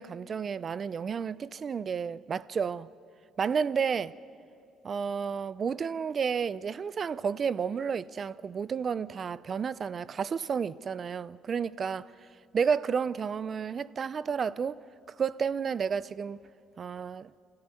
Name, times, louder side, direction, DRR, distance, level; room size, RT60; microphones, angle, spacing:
voice 1, 0.0-2.9 3.4-4.1 4.8-12.1 12.5-14.8 15.2-16.4 16.8-17.3, right 6 dB, 40° right, 0.5 m, -31 dB
28.5 x 13.5 x 9.8 m
cardioid pair, 110°, 0 cm